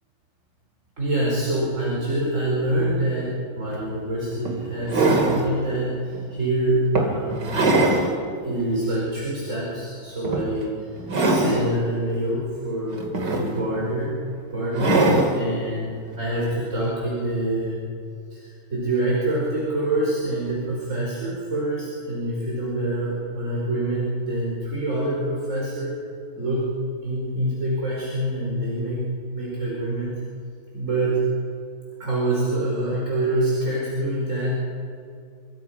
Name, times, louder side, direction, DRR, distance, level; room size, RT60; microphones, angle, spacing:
voice 1, 1.0-7.5 8.4-14.2 14.5-17.9 18.3-26.0 26.4-26.7 27.0-29.0 29.3-30.1 30.7-31.2 32.0-34.6, right 1 dB, 40° right, -5 dB, 5.3 m, -26 dB
sound 1, 3.7-3.8 4.5-5.5 6.1-6.3 7.0-8.1 8.6-8.7 10.2-10.6 11.0-11.8 12.9-13.8 14.7-15.4 16.7-16.8, right 2 dB, 60° right, 3.3 m, -21 dB
26.5 x 24.0 x 5.8 m, 2.3 s
omnidirectional pair, 2.1 m